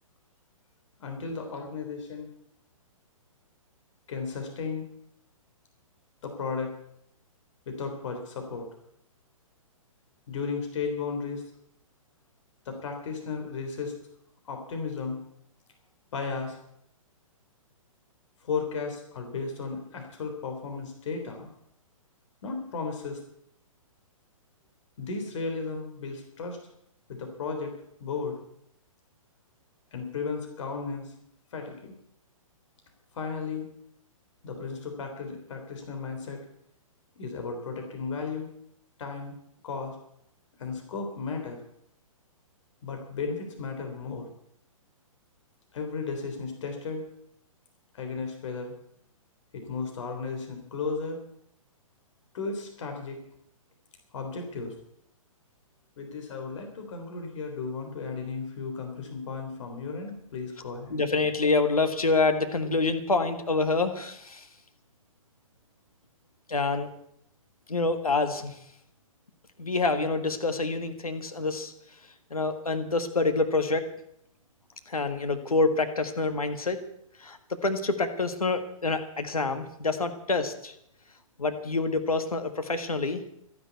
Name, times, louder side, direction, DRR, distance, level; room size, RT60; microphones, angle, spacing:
voice 1, 1.0-2.3 4.1-4.9 6.2-6.7 7.7-8.7 10.3-11.4 12.7-13.9 14.5-15.2 16.1-16.6 18.4-21.5 22.4-23.2 25.0-26.6 27.1-28.4 29.9-31.1 31.5-32.0 33.1-33.7 34.4-36.4 37.2-38.5 39.0-39.4 39.6-40.0 40.6-41.6 42.8-44.3 45.7-47.1 47.9-48.7 49.5-51.2 52.3-53.2 54.1-54.7 56.0-61.0, left 4 dB, 60° left, 4 dB, 3.7 m, -34 dB
voice 2, 60.9-64.5 66.5-66.9 67.7-68.6 69.6-71.7 72.3-73.9 74.9-76.8 77.2-80.7 81.4-83.2, left 3 dB, 90° left, 7 dB, 1.7 m, -27 dB
13.0 x 11.0 x 8.3 m, 0.75 s
figure-of-eight pair, 125°, 18 cm